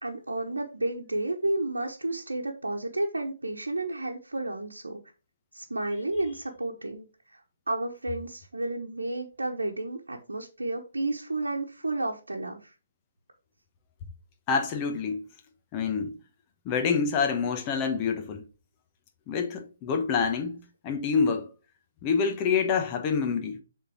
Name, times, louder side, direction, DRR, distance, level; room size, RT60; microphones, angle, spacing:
voice 1, 0.0-5.0 5.5-7.1 7.3-7.4 7.7-12.7, right 2 dB, 85° right, 1.0 m, -31 dB
voice 2, 14.5-15.3 15.7-16.2 16.6-18.5 19.3-21.5 22.0-23.6, left 5 dB, 25° left, 1.1 m, -27 dB
6.9 x 3.8 x 4.8 m
figure-of-eight pair, 140°, 0 cm